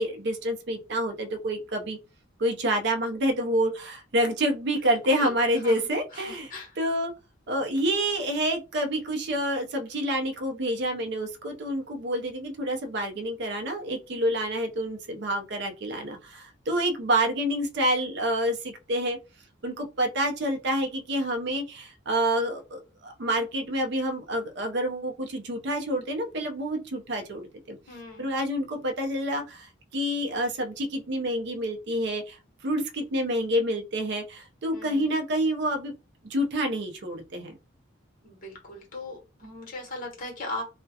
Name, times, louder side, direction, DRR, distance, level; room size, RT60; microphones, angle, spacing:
voice 1, 0.0-2.0 2.4-7.1 7.5-19.2 19.6-27.8 28.2-32.4 32.6-35.9 36.2-37.6, right 1 dB, 55° right, 5 dB, 0.5 m, -28 dB
voice 2, 6.1-6.7 27.9-28.3 34.7-35.1 38.2-40.6, left 2 dB, 40° left, 0 dB, 0.9 m, -38 dB
2.3 x 2.1 x 2.7 m, 0.29 s
head